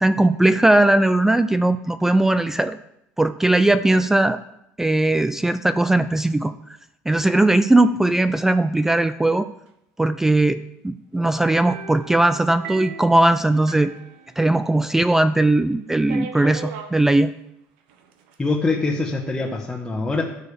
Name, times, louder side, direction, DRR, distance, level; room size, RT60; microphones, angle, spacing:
voice 1, 0.0-2.8 3.2-4.4 4.8-6.8 7.1-9.5 10.0-13.9 14.4-17.3, right 2 dB, 5° right, 12 dB, 0.3 m, -19 dB
sound 1, 11.7-14.9 15.2-15.3 16.1-17.0 17.9-18.3, right 7 dB, 90° right, 1.3 m, -38 dB
voice 2, 18.4-20.2, left 3 dB, 10° left, -2 dB, 1.3 m, -24 dB
17.0 x 6.9 x 3.4 m, 0.82 s
cardioid pair, 130°, 6 cm